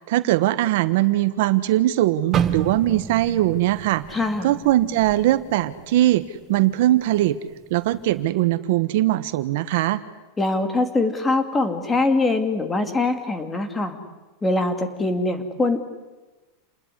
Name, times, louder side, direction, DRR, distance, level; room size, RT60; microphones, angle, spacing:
voice 1, 0.1-4.0 4.4-6.2 6.5-7.4 7.7-10.0, right 15 dB, 60° right, 12 dB, 1.3 m, -20 dB
sound 1, 2.3-6.4 6.7-7.0 7.6-8.0, right 8 dB, 25° right, 1.4 m, -30 dB
voice 2, 4.1-4.5 10.4-14.0 14.4-15.8, left 2 dB, 10° left, 7 dB, 2.5 m, -23 dB
28.5 x 20.5 x 9.9 m, 1.2 s
supercardioid pair, 165°, 0 cm